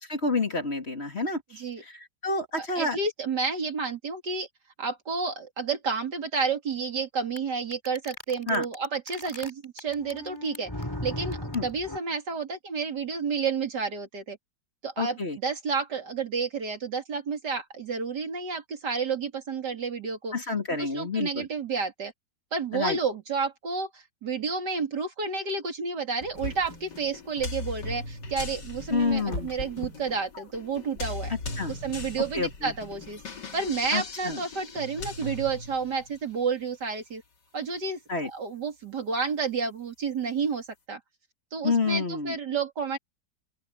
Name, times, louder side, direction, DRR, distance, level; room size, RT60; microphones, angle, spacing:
voice 1, 0.0-3.0 8.5-8.6 11.5-11.7 15.0-15.4 20.3-21.5 22.7-23.0 28.9-29.5 31.3-31.7 32.3-32.7 33.9-34.4 38.1-38.3 41.6-42.4, left 3 dB, 35° left, 3.0 m, -29 dB
voice 2, 1.5-1.8 2.5-4.5 4.8-10.7 11.0-14.4 14.8-20.3 20.8-22.1 22.5-31.3 31.7-33.2 33.5-37.2 37.5-38.0 38.2-41.0 41.5-43.0, right 5 dB, 75° right, 3.3 m, -30 dB
sound 1, 7.4-7.5 7.7-12.0, left 1 dB, 10° left, 3.4 m, -37 dB
sound 2, 26.2-27.0 28.5-30.8, left 2 dB, 60° left, 6.2 m, -38 dB
sound 3, 26.4-36.2, left 3 dB, 85° left, 3.1 m, -39 dB
open air
omnidirectional pair, 1.8 m